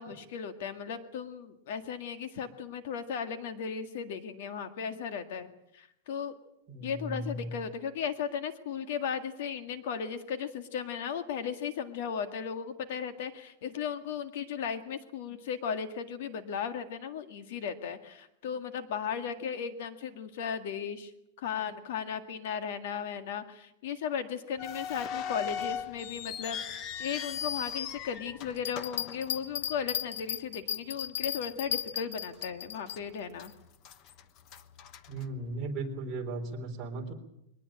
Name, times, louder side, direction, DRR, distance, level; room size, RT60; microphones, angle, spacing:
voice 1, 0.0-6.4 6.8-21.1 21.4-33.5, left 7 dB, 55° left, 9 dB, 1.8 m, -36 dB
voice 2, 6.7-7.5 35.1-37.1, right 2 dB, 20° right, -1 dB, 3.7 m, -36 dB
sound 1, 24.6-29.9 30.2-30.3 31.0-31.2 31.7-31.8 32.4-33.0 33.3-35.8, left 8 dB, 30° left, 0.9 m, -39 dB
sound 2, 28.6-33.0, left 10 dB, 75° left, 1.1 m, -35 dB
22.5 x 19.0 x 8.8 m, 0.82 s
supercardioid pair, 180°, 0 cm